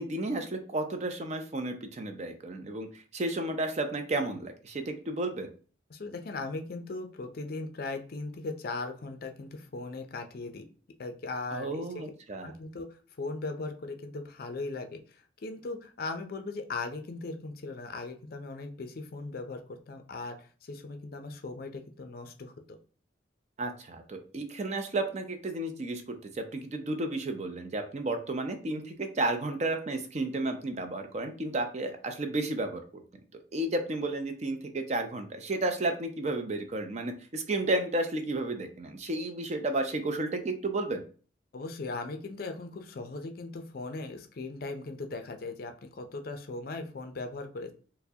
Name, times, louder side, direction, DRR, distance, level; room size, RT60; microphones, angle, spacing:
voice 1, 0.0-5.5 11.5-12.5 23.6-33.0 33.5-41.0, right 2 dB, 35° right, 6 dB, 0.4 m, -32 dB
voice 2, 5.9-10.6 11.0-12.0 12.4-22.8 41.5-47.7, left 3 dB, 50° left, 6 dB, 0.4 m, -38 dB
4.4 x 2.1 x 2.7 m, 0.40 s
head